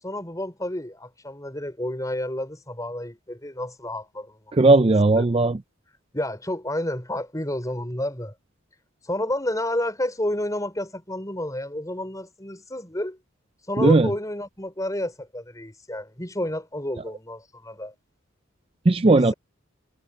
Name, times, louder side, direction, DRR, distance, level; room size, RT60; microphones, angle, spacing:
voice 1, 0.0-4.5 6.1-8.3 9.0-13.2 13.7-17.9 19.0-19.3, left 1 dB, 15° left, 5.0 m, -30 dB
voice 2, 4.5-5.6 13.8-14.1 18.9-19.3, right 2 dB, 25° right, 0.4 m, -17 dB
head